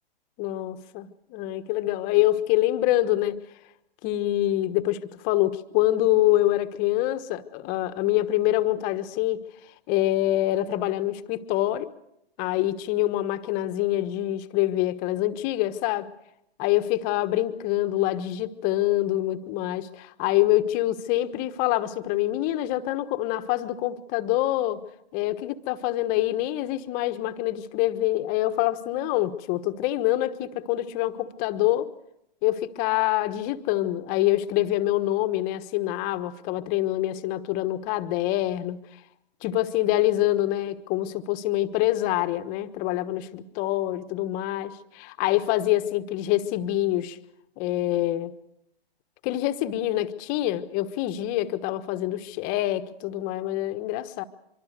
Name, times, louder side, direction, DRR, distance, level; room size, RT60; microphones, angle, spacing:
voice 1, 0.4-3.4 4.0-9.4 9.9-11.9 12.4-16.1 16.6-24.8 25.1-31.9 32.4-38.8 39.4-47.2 47.6-48.3 49.2-54.2, left 15 dB, 25° left, 1.3 m, -25 dB
25.0 x 23.5 x 6.7 m
hypercardioid pair, 130°, 31 cm